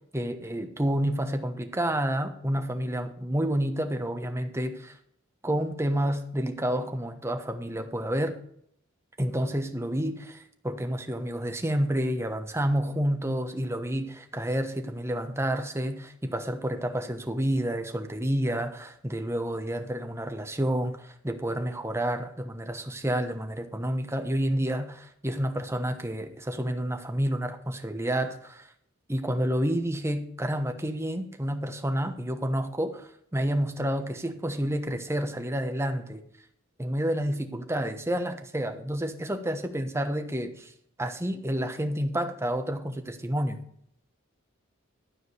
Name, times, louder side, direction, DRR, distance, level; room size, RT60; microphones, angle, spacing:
voice 1, 0.1-5.0 5.4-8.4 9.2-28.7 29.1-36.2 36.8-40.7 41.0-43.6, right 1 dB, 15° right, 6 dB, 1.1 m, -29 dB
12.5 x 5.0 x 8.0 m, 0.66 s
head